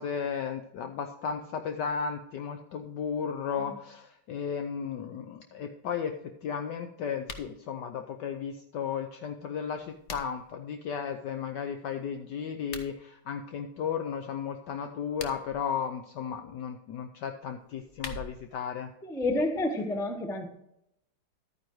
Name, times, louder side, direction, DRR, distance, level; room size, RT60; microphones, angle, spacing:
voice 1, 0.0-18.9, left 7 dB, 70° left, 6 dB, 1.1 m, -34 dB
sound 1, 7.2-7.5 9.6-10.5 12.6-12.9 15.0-15.6 17.6-18.6, left 3 dB, 50° left, 0.9 m, -43 dB
voice 2, 19.0-20.5, left 2 dB, 5° left, 5 dB, 0.4 m, -29 dB
12.0 x 9.4 x 3.1 m, 0.78 s
omnidirectional pair, 2.2 m